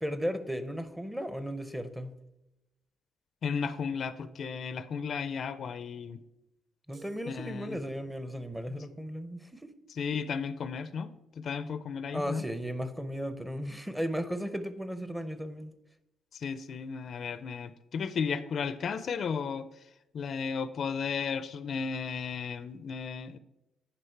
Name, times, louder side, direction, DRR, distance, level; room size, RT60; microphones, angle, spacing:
voice 1, 0.0-2.2 6.9-9.7 12.1-15.7, equal, 5° right, 12 dB, 0.6 m, -35 dB
voice 2, 3.4-6.2 7.3-7.8 9.9-12.4 16.3-19.7 20.1-23.4, left 6 dB, 50° left, 14 dB, 0.4 m, -34 dB
sound 1, 6.9-8.3, right 6 dB, 60° right, 1.6 m, -59 dB
9.9 x 5.0 x 4.5 m, 0.92 s
cardioid pair, 120°, 0 cm